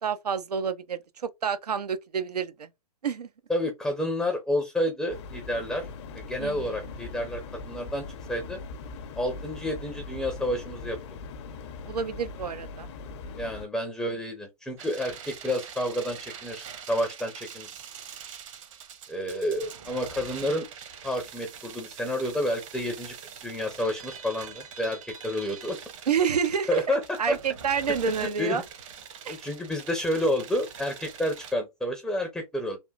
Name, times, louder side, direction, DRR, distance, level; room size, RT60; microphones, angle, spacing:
voice 1, 0.0-2.7 3.0-3.3 6.4-6.8 11.9-12.9 26.1-26.8 27.2-28.6 29.2-29.4, right 7 dB, 85° right, 0.6 m, -28 dB
voice 2, 3.5-5.9 6.1-8.6 9.2-11.0 13.4-17.7 19.1-20.7 21.0-23.2 23.4-25.8 26.7-27.0 27.3-27.4 28.2-28.6 29.3-32.8, left 1 dB, ahead, 0.5 m, -30 dB
sound 1, 5.1-13.7, left 4 dB, 45° left, 0.7 m, -40 dB
sound 2, 14.8-31.5, right 7 dB, 55° right, 1.0 m, -44 dB
3.5 x 2.5 x 2.2 m
hypercardioid pair, 125°, 20 cm